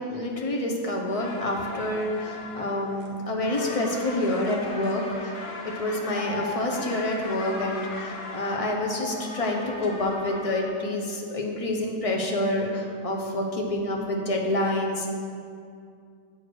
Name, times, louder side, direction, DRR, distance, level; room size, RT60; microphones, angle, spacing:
voice 1, 0.0-5.3 5.6-15.1, left 1 dB, 30° left, 0 dB, 0.8 m, -28 dB
sound 1, 1.1-10.7, left 2 dB, 70° left, 1.2 m, -37 dB
7.6 x 4.5 x 6.2 m, 2.3 s
omnidirectional pair, 1.3 m